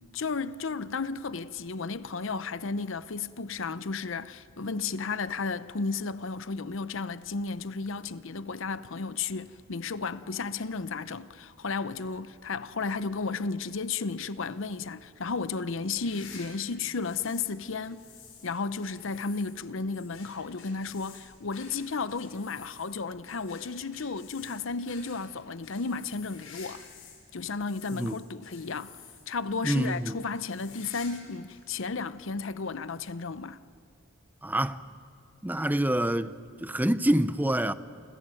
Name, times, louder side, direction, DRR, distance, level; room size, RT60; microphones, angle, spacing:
voice 1, 0.1-18.1 18.4-26.8 27.3-28.9 29.3-33.6, left 4 dB, 65° left, 0.8 m, -33 dB
sound 1, 15.9-17.5 17.8-27.2 27.5-29.4 29.7-30.0 30.3-31.2 31.5-31.6 32.4-32.5 33.7-33.8, left 6 dB, 85° left, 6.6 m, -51 dB
voice 2, 29.6-30.2 34.4-34.8 35.4-36.3 36.6-37.7, right 1 dB, 10° right, 0.7 m, -26 dB
29.0 x 26.0 x 7.8 m
head